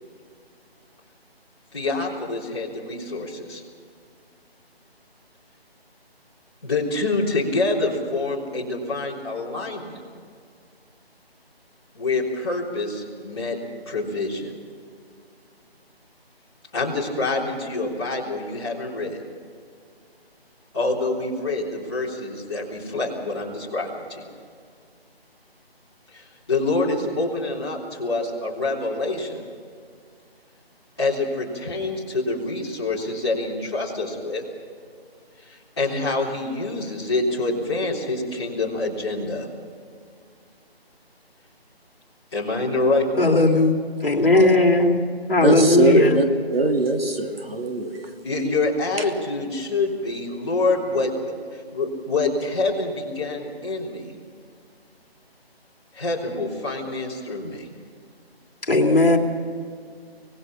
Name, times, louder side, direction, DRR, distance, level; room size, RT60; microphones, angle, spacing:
voice 1, 1.7-3.6 6.6-10.0 11.9-13.6 13.9-14.5 16.7-19.2 20.7-24.2 26.1-29.5 31.0-34.4 35.4-39.5 42.3-43.4 48.2-54.0 55.9-57.7, left 2 dB, 25° left, -6 dB, 3.6 m, -26 dB
voice 2, 43.2-43.7 44.0-44.9 45.3-46.2 58.7-59.2, left 2 dB, 60° left, 3 dB, 2.7 m, -17 dB
voice 3, 45.4-46.3 46.5-48.1, right 2 dB, 65° right, 4 dB, 3.0 m, -21 dB
25.0 x 19.5 x 5.8 m, 2.2 s
figure-of-eight pair, 175°, 31 cm